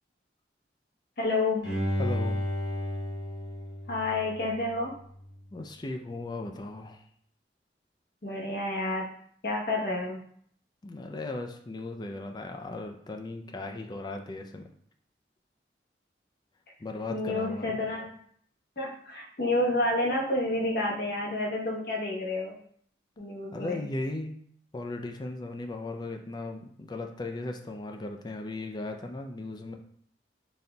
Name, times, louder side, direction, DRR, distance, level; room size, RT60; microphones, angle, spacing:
voice 1, 1.2-1.8 3.9-5.0 8.2-9.1 9.4-10.2 17.1-18.1 18.8-22.6 23.2-23.8, left 2 dB, 60° left, -1 dB, 0.9 m, -29 dB
Bowed string instrument, 1.6-4.7 5.2-5.3, equal, 80° left, 1.3 m, -32 dB
voice 2, 2.0-2.4 5.5-7.0 10.8-14.7 16.8-17.8 23.5-24.4 24.7-29.8, left 2 dB, 25° left, 4 dB, 0.3 m, -37 dB
4.0 x 2.3 x 3.8 m, 0.64 s
head